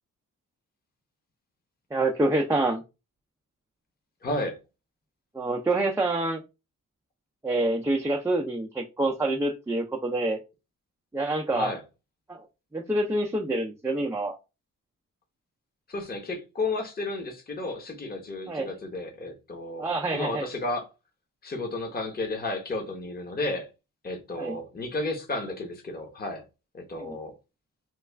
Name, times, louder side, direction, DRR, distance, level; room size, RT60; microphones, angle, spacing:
voice 1, 1.9-2.8 5.3-6.4 7.4-10.4 11.1-11.7 12.3-12.4 12.7-14.4 18.5-18.7 19.8-20.5 24.4-24.6 27.0-27.1, right 2 dB, 10° right, 0.4 m, -27 dB
voice 2, 4.2-4.6 11.5-11.8 15.9-19.9 20.1-20.9 21.4-23.7 24.0-26.4 26.7-27.3, left 2 dB, 30° left, 0.9 m, -32 dB
3.1 x 2.3 x 3.4 m
cardioid pair, 100°, 33 cm